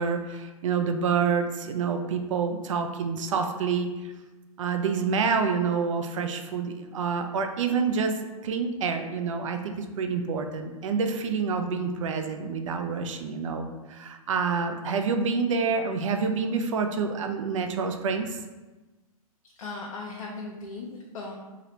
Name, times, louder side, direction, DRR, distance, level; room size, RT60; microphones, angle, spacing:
voice 1, 0.0-4.1 4.6-18.4, right 5 dB, 60° right, 6 dB, 0.4 m, -28 dB
voice 2, 19.6-21.3, left 3 dB, 65° left, -2 dB, 0.6 m, -37 dB
2.8 x 2.7 x 3.2 m, 1.2 s
figure-of-eight pair, 115°, 19 cm